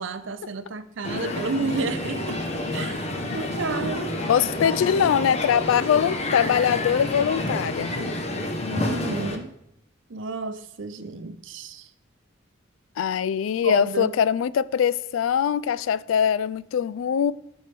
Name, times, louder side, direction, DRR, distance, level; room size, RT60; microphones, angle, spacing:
voice 1, 0.0-2.4 2.7-3.1 3.3-4.2 8.7-9.6 10.1-11.9 13.6-14.1, right 3 dB, 75° right, 0.6 m, -31 dB
Crowd, 1.0-9.4, left 1 dB, 30° left, 0.9 m, -29 dB
voice 2, 4.3-7.9 13.0-17.3, left 8 dB, 85° left, 0.3 m, -22 dB
12.5 x 4.5 x 3.3 m
head